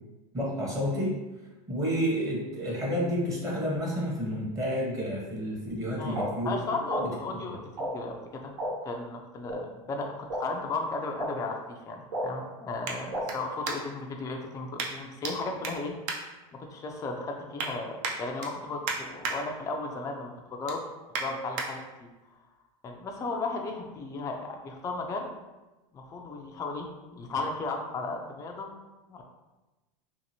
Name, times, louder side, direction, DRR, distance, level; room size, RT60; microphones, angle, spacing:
voice 1, 0.3-1.2 1.7-6.6 7.0-7.1, equal, 20° right, -4 dB, 0.8 m, -30 dB
voice 2, 6.0-8.5 8.8-15.9 16.5-20.8 21.1-22.1 22.8-25.3 25.9-28.7 29.1-29.2, left 3 dB, 20° left, 2 dB, 0.3 m, -35 dB
sound 1, 6.1-6.2 6.9-7.0 7.8-7.9 8.6-8.7 9.5-9.6 10.3-10.4 11.2-11.3 12.1-12.2 13.1-13.2, right 1 dB, 85° right, 1.1 m, -31 dB
sound 2, 10.1-14.1 14.8-15.3 15.6-16.9 17.3-17.7 18.0-19.4 19.8-20.0 20.4-21.7 22.2-22.3, right 4 dB, 60° right, 0.6 m, -36 dB
2.7 x 2.5 x 2.8 m, 1.1 s
supercardioid pair, 110°, 18 cm